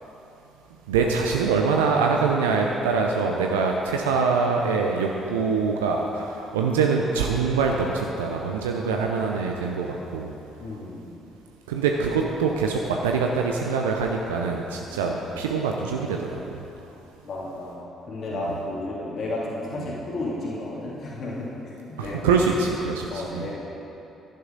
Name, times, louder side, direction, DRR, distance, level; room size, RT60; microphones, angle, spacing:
voice 1, 0.9-10.3 11.7-16.6 22.0-23.5, right 5 dB, 75° right, 1 dB, 0.6 m, -24 dB
voice 2, 10.6-11.0 15.0-15.1 17.2-17.7 18.0-22.5 23.1-23.5, left 2 dB, 50° left, -5 dB, 2.8 m, -32 dB
11.0 x 11.0 x 3.9 m, 2.9 s
figure-of-eight pair, 45°, 0 cm